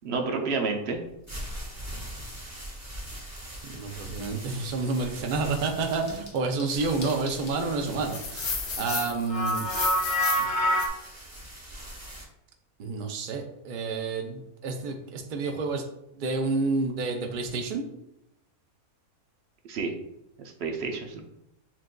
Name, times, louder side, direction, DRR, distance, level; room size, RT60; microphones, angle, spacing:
voice 1, 0.0-1.0 19.7-19.9 20.4-21.2, right 4 dB, 60° right, 3 dB, 0.7 m, -30 dB
sound 1, 1.0-12.3, right 1 dB, 15° right, 0.8 m, -42 dB
voice 2, 3.6-9.7 12.8-15.8 16.1-17.8, right 3 dB, 90° right, 3 dB, 0.4 m, -29 dB
sound 2, 5.9-7.6 7.9-10.9, left 1 dB, 80° left, 1.3 m, -27 dB
7.2 x 2.5 x 2.2 m, 0.83 s
omnidirectional pair, 1.5 m